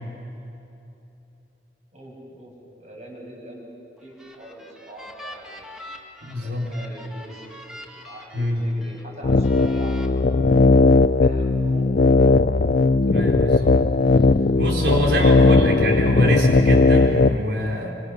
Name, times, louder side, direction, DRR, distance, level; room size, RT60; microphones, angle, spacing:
voice 1, 1.9-3.7 4.0-5.7 6.4-7.7 7.9-12.3 14.6-14.7, equal, 40° right, -2 dB, 6.9 m, -42 dB
sound 1, 4.0-9.0 9.4-10.1, left 1 dB, 5° right, 1.9 m, -43 dB
voice 2, 6.2-6.7 8.3-8.6 13.1-13.7 14.5-17.9, equal, 70° right, 0 dB, 4.1 m, -24 dB
sound 2, 9.2-17.4, left 3 dB, 55° left, 0.5 m, -17 dB
25.5 x 25.5 x 6.6 m, 2.8 s
head